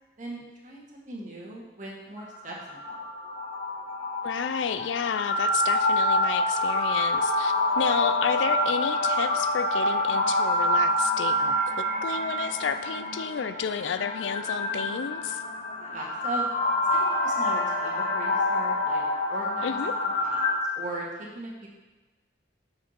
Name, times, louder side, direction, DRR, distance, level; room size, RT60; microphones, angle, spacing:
voice 1, 0.2-3.1 15.8-16.4 16.9-19.0 19.3-20.4 20.8-21.7, right 1 dB, 45° right, -3 dB, 1.7 m, -39 dB
sound 1, 2.2-20.6, left 1 dB, 45° left, 1.7 m, -27 dB
voice 2, 4.2-15.4 19.6-19.9, left 7 dB, 85° left, 11 dB, 0.4 m, -31 dB
6.5 x 4.8 x 5.7 m, 1.2 s
head